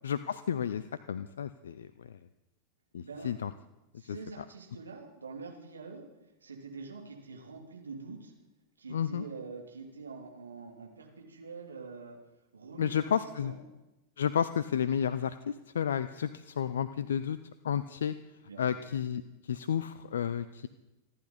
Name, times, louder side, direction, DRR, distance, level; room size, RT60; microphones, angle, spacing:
voice 1, 0.0-2.2 2.9-3.5 4.0-4.4 8.9-9.2 12.8-13.5 14.2-17.4 17.6-18.1 18.6-20.7, left 8 dB, 65° left, 14 dB, 0.5 m, -32 dB
voice 2, 3.0-3.3 4.0-6.0 6.4-8.3 8.8-12.2 12.5-13.1 13.4-13.6 18.4-18.8, right 4 dB, 75° right, 0 dB, 2.9 m, -45 dB
27.0 x 11.0 x 4.2 m, 1.0 s
figure-of-eight pair, 90°, 0 cm